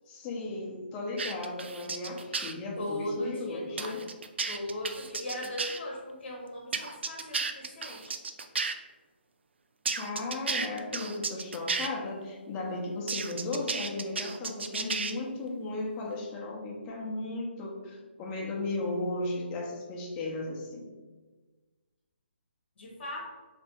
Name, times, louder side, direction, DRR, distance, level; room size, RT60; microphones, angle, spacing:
voice 1, 0.1-4.0 10.0-20.9, left 2 dB, 20° left, -2 dB, 0.9 m, -35 dB
sound 1, 1.2-2.5 3.8-5.8 6.7-8.7 9.8-11.9 13.1-15.1, right 4 dB, 70° right, 0.4 m, -33 dB
voice 2, 2.8-4.1 4.5-8.1 22.8-23.2, left 1 dB, 60° left, -1 dB, 1.0 m, -38 dB
3.4 x 3.4 x 4.5 m, 1.3 s
figure-of-eight pair, 145°, 6 cm